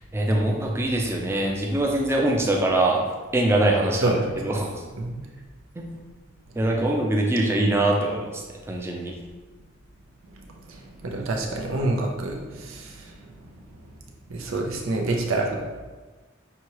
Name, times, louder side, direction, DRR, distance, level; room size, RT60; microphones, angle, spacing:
voice 1, 0.1-3.0 3.3-4.8 5.8-5.9 6.6-8.4 8.7-9.1, right 1 dB, 10° right, 0 dB, 0.4 m, -23 dB
voice 2, 4.0-4.4 5.0-5.2 10.7-13.1 14.3-15.8, right 2 dB, 90° right, 1 dB, 0.7 m, -27 dB
6.0 x 2.8 x 3.0 m, 1.3 s
head